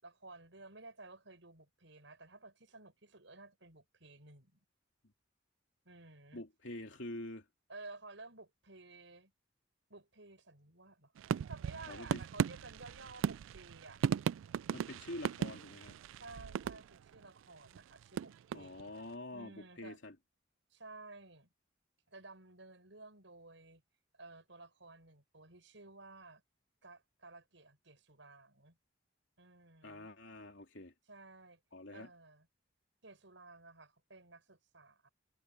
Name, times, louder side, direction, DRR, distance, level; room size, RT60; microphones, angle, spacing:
voice 1, 0.0-4.6 5.8-6.4 7.7-9.3 9.9-11.1 11.5-14.0 16.1-18.9 19.3-20.0 20.7-21.5 22.1-23.8 24.1-26.4 26.8-28.8 29.4-30.1 31.1-31.6 31.9-32.5 33.0-35.1, right 3 dB, 70° right, 7.2 m, -54 dB
voice 2, 6.3-7.4 11.9-12.2 14.7-16.0 18.5-20.1 29.8-30.9 31.7-32.1, left 1 dB, 70° left, 3.1 m, -46 dB
sound 1, 11.2-17.2 17.7-19.0, right 7 dB, 85° right, 0.3 m, -37 dB
head